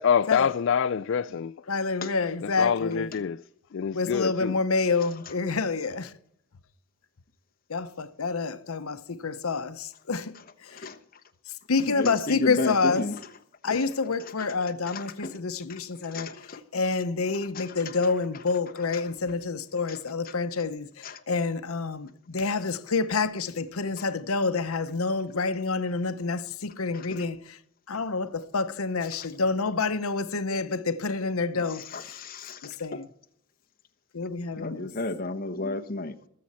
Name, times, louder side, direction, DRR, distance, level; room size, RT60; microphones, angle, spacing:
voice 1, 0.0-1.5 2.4-3.4 3.7-4.6, left 7 dB, 60° left, 0.4 m, -26 dB
voice 2, 1.7-3.1 3.9-6.1 7.7-10.3 10.6-10.9 11.7-13.1 13.6-16.3 16.7-27.6 27.9-31.8 32.6-33.0 34.1-34.9, left 4 dB, 85° left, 0.9 m, -28 dB
voice 3, 10.7-11.0 11.8-13.2 13.7-13.8 14.2-14.5 14.9-15.4 15.7-16.6 17.5-18.1 18.8-19.1 19.9-20.0 20.2-20.4 21.0-21.2 24.0-24.1 26.9-27.2 29.2-29.3 31.7-33.0 34.6-36.3, left 2 dB, 40° left, 1.1 m, -34 dB
20.5 x 7.7 x 4.2 m
head